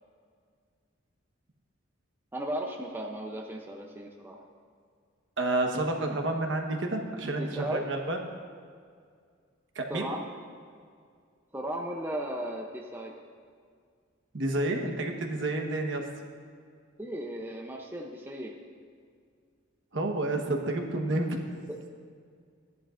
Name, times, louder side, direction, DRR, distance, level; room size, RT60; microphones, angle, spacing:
voice 1, 2.3-4.4 7.3-7.9 9.9-10.2 11.5-13.2 17.0-18.6 21.7-21.9, right 1 dB, 10° right, 1 dB, 0.6 m, -36 dB
voice 2, 5.4-8.2 9.7-10.1 14.3-16.0 19.9-21.4, right 2 dB, 65° right, 2 dB, 1.2 m, -30 dB
15.5 x 11.0 x 2.5 m, 2.1 s
head